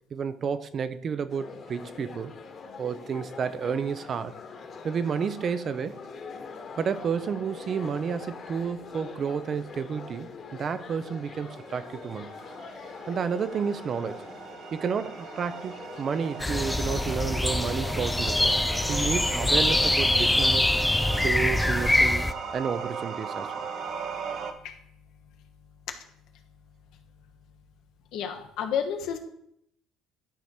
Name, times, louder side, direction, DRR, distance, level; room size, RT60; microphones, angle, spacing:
voice 1, 0.1-2.3 2.8-4.3 4.8-6.0 6.8-12.3 13.1-14.3 14.7-18.5 18.9-20.7 21.1-23.7, right 6 dB, 45° right, 0.6 m, -31 dB
sound 1, 1.3-20.2, left 5 dB, 45° left, 1.7 m, -44 dB
sound 2, 11.3-24.5, right 5 dB, 60° right, 1.1 m, -38 dB
sound 3, 16.4-22.3, left 1 dB, 10° left, 0.5 m, -24 dB
voice 2, 18.8-19.2 19.6-19.7 24.6-24.8 28.1-29.2, left 8 dB, 70° left, 1.3 m, -32 dB
11.5 x 4.7 x 4.4 m
supercardioid pair, 90°, 0 cm